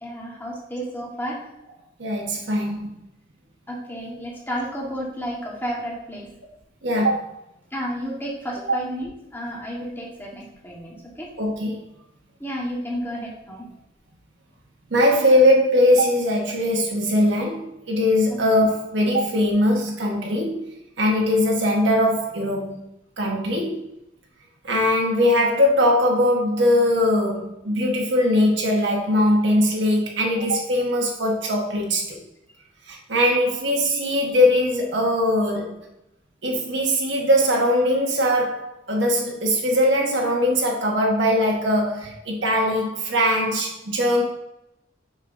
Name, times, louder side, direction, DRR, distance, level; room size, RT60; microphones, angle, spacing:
voice 1, 0.0-1.5 3.7-6.3 7.7-11.3 12.4-13.6, equal, 10° left, -3 dB, 1.5 m, -31 dB
voice 2, 2.0-2.9 6.8-7.3 11.4-11.8 14.9-20.6 21.0-22.8 23.2-23.8 24.6-32.2 32.9-35.8 36.4-44.2, left 1 dB, 80° right, -1 dB, 1.3 m, -21 dB
6.7 x 5.3 x 2.6 m, 0.85 s
head